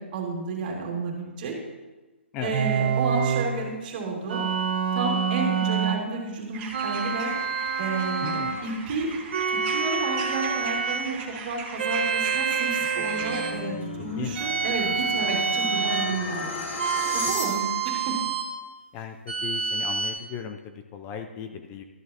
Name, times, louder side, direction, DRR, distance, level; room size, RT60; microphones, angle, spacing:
voice 1, 0.0-1.6 2.4-4.4 4.9-7.3 7.8-9.2 9.5-16.7 17.1-18.2, right 3 dB, 45° right, -1 dB, 2.3 m, -31 dB
sound 1, 2.5-3.5 4.3-6.0 6.7-8.6 9.3-11.1 11.8-13.6 14.4-16.2 16.8-18.5 19.3-20.1, right 6 dB, 60° right, 1.5 m, -27 dB
sound 2, 6.5-13.5, right 5 dB, 25° right, 1.4 m, -39 dB
voice 2, 8.2-8.6 14.2-14.4 18.9-21.8, left 8 dB, 25° left, 6 dB, 0.5 m, -36 dB
sound 3, 12.8-17.9, left 3 dB, 60° left, 2.5 m, -35 dB
13.0 x 7.5 x 2.9 m, 1.2 s
hypercardioid pair, 140°, 7 cm